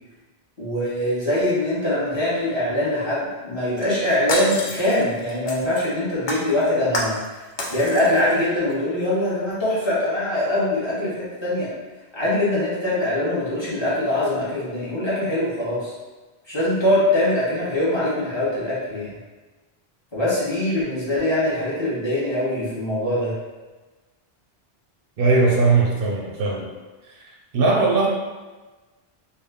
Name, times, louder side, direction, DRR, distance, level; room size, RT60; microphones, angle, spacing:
voice 1, 0.6-7.4 7.7-11.7 12.1-15.9 16.5-19.1 20.1-23.3, left 1 dB, 25° left, -10 dB, 1.2 m, -23 dB
Shatter, 3.8-5.9 6.3-7.3 7.6-8.3 8.7-8.8, left 1 dB, 60° left, 0.6 m, -30 dB
voice 2, 25.2-26.7 27.1-28.1, right 3 dB, 70° right, -1 dB, 0.7 m, -20 dB
3.4 x 2.3 x 3.6 m, 1.2 s
omnidirectional pair, 1.0 m